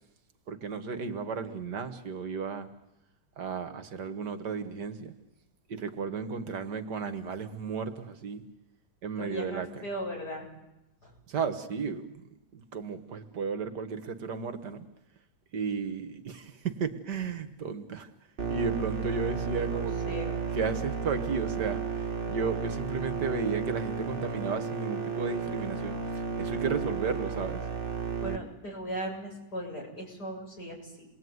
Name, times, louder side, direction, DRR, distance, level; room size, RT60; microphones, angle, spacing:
voice 1, 0.5-2.7 3.4-5.1 5.7-8.4 9.0-9.8 11.3-12.2 12.5-14.9 15.5-18.1 18.5-26.0 26.4-27.7, right 5 dB, 65° right, 10 dB, 2.0 m, -34 dB
voice 2, 9.2-10.5 11.0-11.1 19.7-20.4 28.2-31.1, equal, 55° left, 0 dB, 8.1 m, -38 dB
sound 1, 18.4-28.4, right 5 dB, 30° right, 1.9 m, -33 dB
28.5 x 20.5 x 9.5 m, 0.94 s
omnidirectional pair, 2.0 m